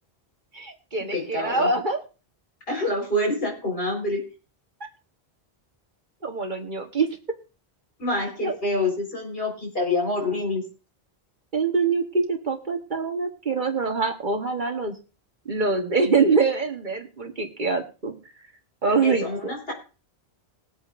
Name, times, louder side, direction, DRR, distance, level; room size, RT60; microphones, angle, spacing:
voice 1, 0.5-2.0 6.2-7.1 8.4-8.6 11.5-14.9 15.5-18.1 18.8-19.5, right 4 dB, 50° right, 5 dB, 1.3 m, -24 dB
voice 2, 1.1-1.7 2.7-4.2 8.0-10.6 19.0-19.7, left 1 dB, 60° left, 0 dB, 4.5 m, -26 dB
21.0 x 8.5 x 2.5 m, 0.34 s
omnidirectional pair, 1.1 m